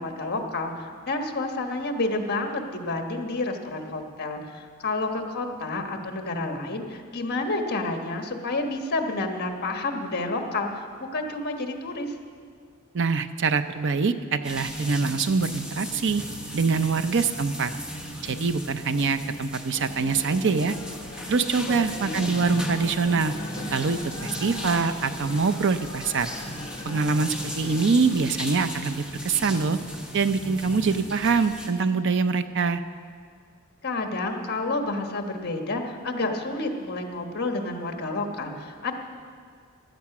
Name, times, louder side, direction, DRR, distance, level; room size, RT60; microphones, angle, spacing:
voice 1, 0.0-10.9 11.1-12.1 21.7-22.3 33.8-38.9, left 2 dB, 45° left, 4 dB, 1.4 m, -30 dB
voice 2, 12.9-16.2 16.5-17.7 18.2-20.7 21.3-23.3 23.7-26.3 26.8-29.8 30.1-32.8, right 4 dB, 55° right, 11 dB, 0.6 m, -24 dB
sound 1, 14.4-31.7, equal, 5° right, 1.2 m, -37 dB
sound 2, 19.7-27.9, left 2 dB, 20° left, 2.2 m, -40 dB
16.0 x 11.5 x 6.0 m, 2.1 s
head